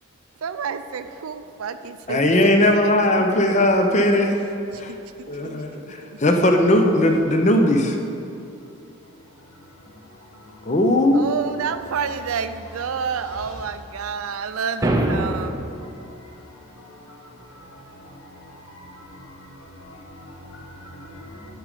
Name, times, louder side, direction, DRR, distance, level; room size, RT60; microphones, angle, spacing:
voice 1, 0.4-3.1 4.7-6.2 11.1-15.5, right 6 dB, 80° right, 0.4 m, -30 dB
voice 2, 2.1-4.4 4.8-4.9 5.3-8.0 10.7-11.3, left 1 dB, 35° left, 0.6 m, -18 dB
voice 3, 9.4-10.7 14.3-14.4 15.6-21.5, left 1 dB, 80° left, 1.6 m, -45 dB
sound 1, 14.8-15.8, right 1 dB, 15° right, 0.5 m, -23 dB
9.2 x 5.1 x 6.6 m
head